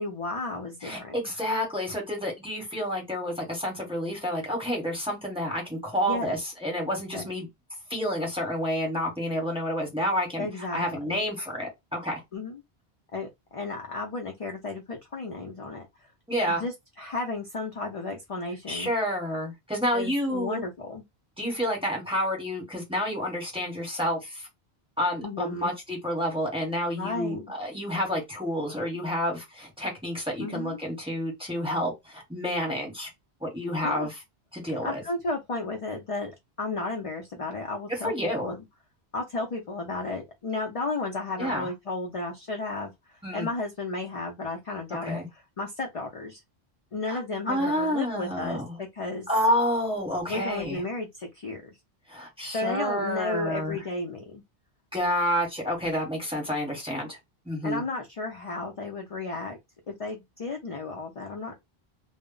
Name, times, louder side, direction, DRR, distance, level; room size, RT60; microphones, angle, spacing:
voice 1, 0.0-1.2 6.1-6.4 7.1-7.3 10.4-11.2 12.3-12.6 13.1-15.9 16.5-18.9 19.9-21.0 25.2-25.7 26.9-27.5 30.4-30.8 33.8-34.1 34.8-38.6 39.1-46.4 46.9-49.3 50.3-51.8 52.5-54.4 57.6-59.6 59.9-61.6, left 3 dB, 45° left, 0.5 m, -33 dB
voice 2, 0.8-7.5 7.9-12.2 16.3-16.6 18.7-20.6 21.4-24.5 25.0-33.1 33.4-34.2 34.5-35.0 38.0-38.5 41.4-41.7 43.2-43.5 45.0-45.3 47.1-47.2 47.5-48.8 49.3-50.8 52.1-53.8 54.9-57.2 57.4-57.8, equal, 5° right, 0.9 m, -29 dB
2.0 x 2.0 x 3.7 m
omnidirectional pair, 1.1 m